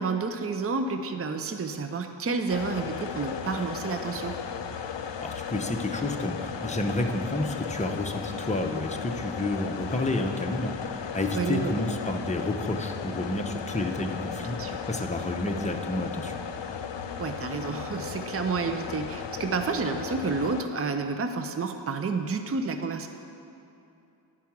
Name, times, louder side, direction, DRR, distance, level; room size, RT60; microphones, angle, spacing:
voice 1, 0.0-4.3 11.3-11.7 14.5-14.8 17.2-23.1, right 4 dB, 30° right, 7 dB, 0.5 m, -30 dB
sound 1, 2.5-20.6, left 7 dB, 70° left, 0.6 m, -36 dB
voice 2, 5.2-16.4, left 2 dB, 15° left, 3 dB, 0.7 m, -30 dB
10.5 x 4.7 x 5.9 m, 2.7 s
wide cardioid pair, 55°, 45 cm